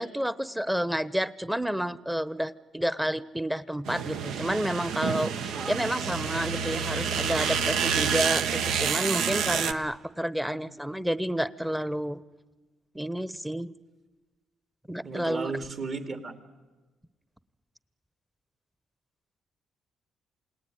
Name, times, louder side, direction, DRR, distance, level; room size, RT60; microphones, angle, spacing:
voice 1, 0.0-12.2 12.9-13.7 14.9-15.5, equal, 5° right, 18 dB, 0.9 m, -30 dB
sound 1, 3.9-9.7, right 7 dB, 85° right, 1.1 m, -28 dB
voice 2, 15.0-16.3, right 4 dB, 50° right, 8 dB, 2.9 m, -35 dB
28.0 x 19.0 x 9.5 m, 1.2 s
cardioid pair, 90°, 0 cm